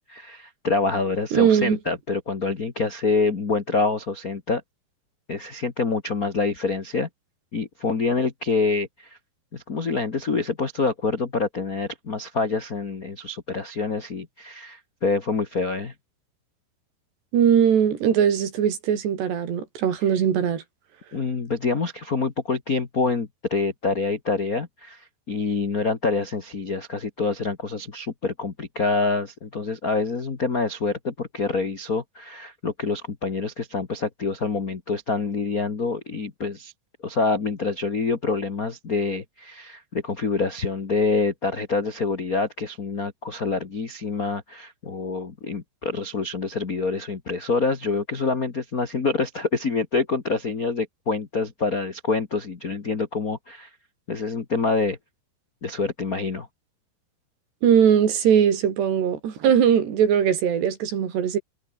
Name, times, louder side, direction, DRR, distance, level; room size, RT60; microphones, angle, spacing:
voice 1, 0.1-4.6 5.3-7.1 7.5-9.1 9.5-15.9 21.1-36.7 37.0-53.7 54.1-55.0 55.6-56.5, left 4 dB, 70° left, 0.8 m, -26 dB
voice 2, 1.3-1.8 17.3-20.6 57.6-61.4, right 8 dB, 80° right, 5.4 m, -20 dB
omnidirectional pair, 4.8 m